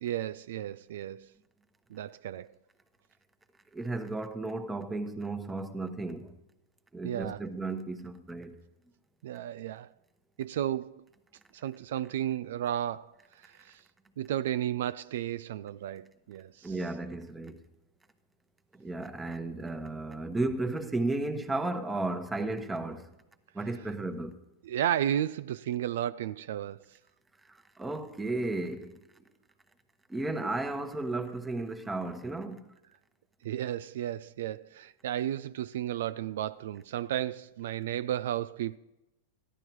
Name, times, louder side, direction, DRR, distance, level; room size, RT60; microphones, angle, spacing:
voice 1, 0.0-1.3 1.9-2.5 7.0-7.5 9.2-9.9 10.4-11.0 11.5-13.2 13.4-13.8 14.2-16.7 24.6-26.8 33.4-38.8, right 11 dB, 75° right, 0.3 m, -33 dB
voice 2, 3.7-6.4 6.9-8.6 16.6-17.6 18.8-23.1 23.5-24.4 27.5-29.0 30.1-32.6, right 2 dB, 10° right, 1.1 m, -34 dB
14.5 x 11.5 x 4.6 m
hypercardioid pair, 120°, 0 cm